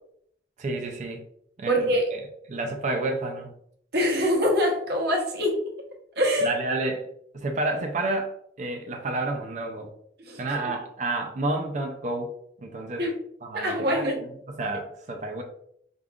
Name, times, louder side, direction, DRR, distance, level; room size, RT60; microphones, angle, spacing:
voice 1, 0.6-1.2 1.6-2.2 2.5-3.5 6.4-7.0 7.3-9.9 10.4-12.3 12.6-13.0 13.4-14.3 14.6-15.4, right 2 dB, 45° right, 3 dB, 0.5 m, -30 dB
voice 2, 1.7-2.1 3.9-5.6 6.2-6.5 10.2-10.4 13.0-13.1 13.5-14.2, equal, 65° right, -1 dB, 0.8 m, -24 dB
5.2 x 2.4 x 2.4 m, 0.69 s
head